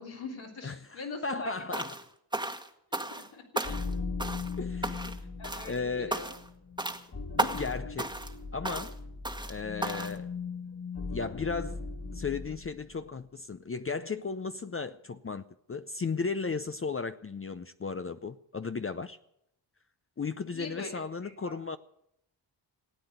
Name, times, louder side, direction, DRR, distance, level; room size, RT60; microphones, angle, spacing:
voice 1, 0.0-1.8 3.1-3.8 5.1-6.3 20.5-21.6, left 4 dB, 85° left, 3.5 m, -43 dB
voice 2, 0.6-2.0 4.6-5.1 5.6-6.2 7.4-8.2 8.5-9.0 9.5-10.3 11.1-11.8 12.1-19.2 20.2-21.8, left 4 dB, 30° left, 0.6 m, -35 dB
sound 1, 1.7-2.1 2.3-3.3 3.6-3.9 4.2-4.6 4.8-5.2 5.4-5.8 6.1-6.5 6.8-7.0 7.4-7.7 8.0-8.3 8.7-8.9 9.3-9.5 9.8-10.2, right 1 dB, 10° right, 1.4 m, -34 dB
sound 2, 3.6-12.8, left 4 dB, 55° left, 2.6 m, -39 dB
17.5 x 8.8 x 9.3 m
cardioid pair, 70°, 46 cm